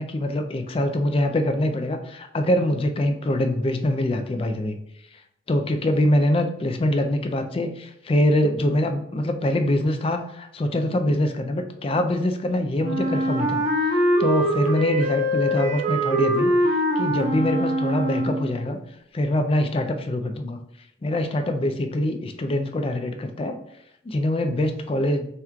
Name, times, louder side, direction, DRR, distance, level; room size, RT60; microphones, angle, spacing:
voice 1, 0.0-4.8 5.1-5.2 5.5-18.8 19.1-20.6 21.0-23.6 24.0-25.3, left 1 dB, 30° left, 6 dB, 0.4 m, -24 dB
Wind instrument woodwind instrument, 12.8-18.6, right 1 dB, 35° right, 1.3 m, -23 dB
5.6 x 3.0 x 2.3 m, 0.75 s
head